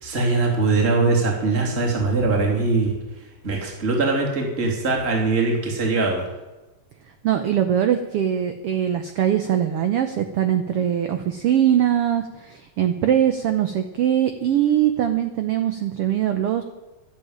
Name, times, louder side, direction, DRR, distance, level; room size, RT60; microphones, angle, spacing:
voice 1, 0.0-2.9 3.4-6.2, right 3 dB, 20° right, -1 dB, 3.0 m, -21 dB
voice 2, 7.2-16.6, right 10 dB, 70° right, 8 dB, 1.4 m, -22 dB
12.5 x 10.5 x 8.9 m, 1.1 s
omnidirectional pair, 3.6 m